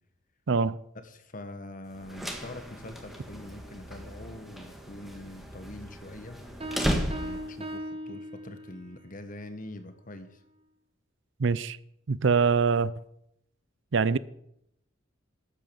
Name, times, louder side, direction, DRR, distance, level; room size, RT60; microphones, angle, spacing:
voice 1, 0.5-0.8 11.4-11.8 12.1-12.9 13.9-14.2, right 5 dB, 65° right, 0.5 m, -24 dB
voice 2, 1.0-6.4 7.0-10.4, left 1 dB, 40° left, 1.5 m, -44 dB
sound 1, 1.9-7.7, equal, ahead, 1.8 m, -35 dB
Piano, 6.6-9.0, equal, 30° right, 1.7 m, -38 dB
13.5 x 9.1 x 7.0 m
head